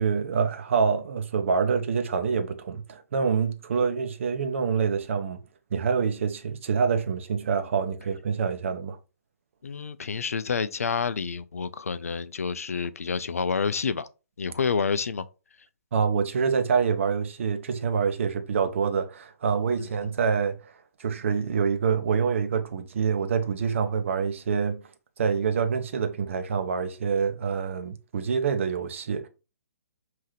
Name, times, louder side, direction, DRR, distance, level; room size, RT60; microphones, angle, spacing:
voice 1, 0.0-5.4 5.7-9.0 15.9-20.6 21.0-24.8 25.2-29.3, right 6 dB, 55° right, 0.8 m, -26 dB
voice 2, 9.6-14.1 14.4-15.3 19.8-20.1, left 5 dB, 70° left, 0.4 m, -29 dB
5.4 x 2.8 x 3.3 m
figure-of-eight pair, 125°, 8 cm